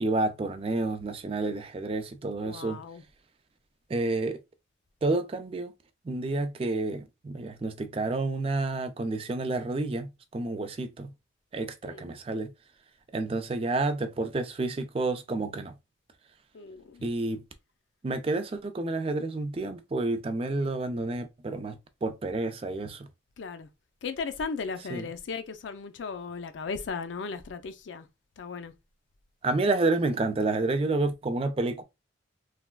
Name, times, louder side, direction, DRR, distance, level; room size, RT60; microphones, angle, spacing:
voice 1, 0.0-2.8 3.9-4.4 5.0-5.7 6.1-11.1 11.5-12.5 13.1-15.7 17.0-17.4 18.0-23.1 24.9-25.1 29.4-31.8, right 2 dB, 30° right, 0.3 m, -29 dB
voice 2, 2.4-3.0 11.8-12.1 16.5-17.0 23.4-23.7 24.0-28.1 28.4-28.7, left 5 dB, 75° left, 0.4 m, -36 dB
3.2 x 2.3 x 2.2 m
head